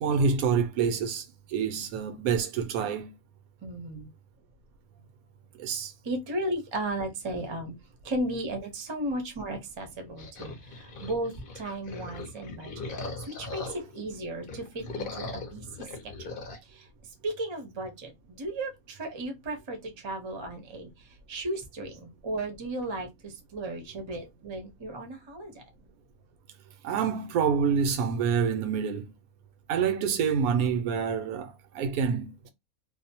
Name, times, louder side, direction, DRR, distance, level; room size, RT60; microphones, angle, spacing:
voice 1, 0.0-3.1 5.6-5.9 26.8-29.1 29.7-32.3, right 6 dB, 90° right, 1.1 m, -27 dB
voice 2, 3.6-4.1 6.0-7.7 8.0-16.4 16.6-25.6, right 1 dB, 35° right, 0.4 m, -35 dB
sound 1, 10.2-14.0 14.4-16.6, left 3 dB, 50° left, 0.7 m, -39 dB
2.7 x 2.0 x 2.7 m
omnidirectional pair, 1.5 m